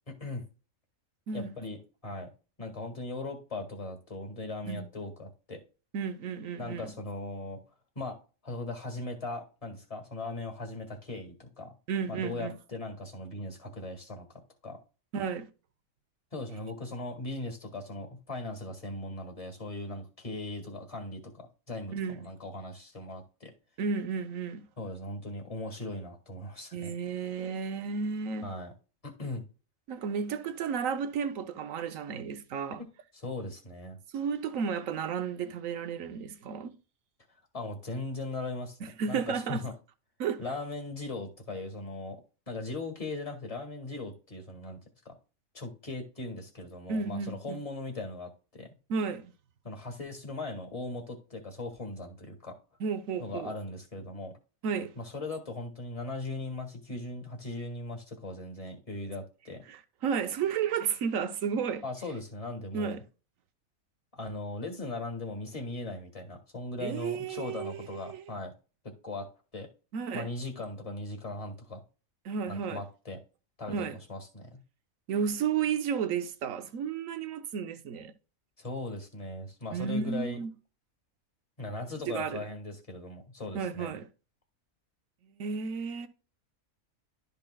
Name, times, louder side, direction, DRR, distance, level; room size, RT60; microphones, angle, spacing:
voice 1, 0.1-0.4 1.3-1.8 2.0-2.3 2.6-5.6 6.6-7.6 8.0-8.2 8.4-11.7 12.1-14.3 14.6-14.8 16.3-23.5 24.8-26.9 28.4-28.7 29.0-29.4 33.1-34.0 37.5-39.7 40.4-42.2 42.5-44.8 45.1-45.2 45.5-48.7 49.6-52.6 53.2-54.3 55.0-59.6 61.8-63.0 64.1-68.5 69.0-69.3 69.5-69.7 70.1-71.8 72.5-73.2 73.6-74.6 78.6-80.4 81.6-84.0, left 2 dB, 25° left, 1.9 m, -39 dB
voice 2, 5.9-6.9 11.9-12.6 15.1-15.5 21.9-22.3 23.8-24.7 26.7-28.5 29.9-32.8 34.1-36.8 38.8-39.6 40.2-40.4 46.9-47.6 48.9-49.3 52.8-53.5 54.6-54.9 59.7-61.8 62.7-63.0 66.8-68.2 69.9-70.3 72.2-72.8 73.7-74.0 75.1-78.1 79.7-80.5 82.1-82.5 83.5-84.1 85.4-86.1, right 6 dB, 75° right, 1.2 m, -33 dB
12.0 x 5.4 x 2.3 m
omnidirectional pair, 1.4 m